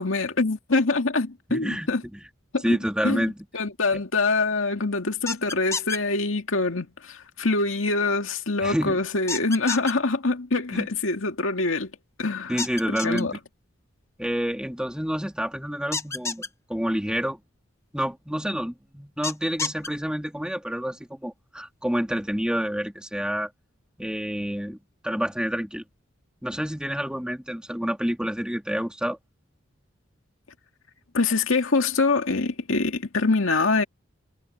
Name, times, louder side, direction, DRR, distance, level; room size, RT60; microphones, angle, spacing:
voice 1, 0.0-2.0 2.5-2.8 3.0-3.3 3.5-11.9 12.2-12.6 12.9-13.3 31.1-33.8, left 3 dB, 90° left, 2.1 m, -24 dB
voice 2, 1.5-2.2 2.6-3.3 3.9-4.0 8.6-9.0 10.7-10.9 12.5-13.4 14.2-16.4 16.7-17.4 17.9-23.5 24.0-24.8 25.0-25.8 26.4-29.2, equal, 5° right, 2.2 m, -28 dB
sound 1, 5.3-6.0 9.3-9.9 12.6-13.2 15.9-16.5 19.2-19.9, left 4 dB, 15° left, 0.9 m, -29 dB
head